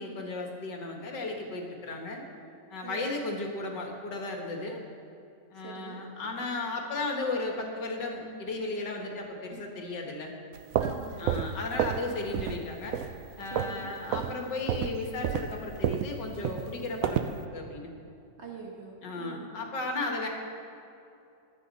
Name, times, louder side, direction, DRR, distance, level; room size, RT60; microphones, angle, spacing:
voice 1, 0.0-2.2 2.7-4.8 5.5-10.3 11.2-13.0 13.4-17.9 19.0-20.3, left 2 dB, 75° left, 2 dB, 2.1 m, -35 dB
voice 2, 5.5-6.0 10.8-11.4 13.5-13.9 18.4-19.5, right 4 dB, 40° right, -1 dB, 1.7 m, -43 dB
sound 1, 10.5-12.1 12.3-12.6 12.9-13.8 14.1-14.3 14.7-17.4, right 9 dB, 70° right, 0.8 m, -30 dB
22.5 x 8.0 x 4.1 m, 2.6 s
omnidirectional pair, 1.9 m